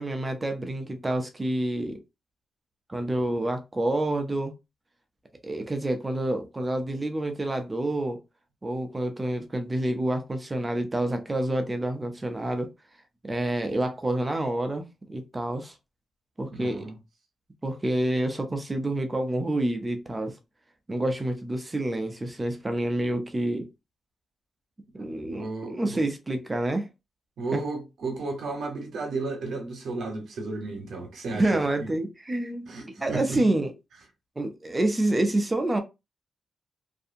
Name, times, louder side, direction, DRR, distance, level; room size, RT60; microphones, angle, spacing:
voice 1, 0.0-2.0 2.9-4.5 5.4-8.2 8.6-12.7 13.2-15.8 16.4-16.9 17.6-20.4 20.9-23.7 24.9-26.9 27.5-27.6 31.3-32.7 33.0-33.7 34.4-35.8, right 1 dB, 15° right, 0.4 m, -28 dB
voice 2, 16.5-16.9 25.0-26.0 27.4-31.6 32.7-33.4, right 3 dB, 70° right, 0.8 m, -33 dB
2.6 x 2.5 x 2.5 m
wide cardioid pair, 180°, 0 cm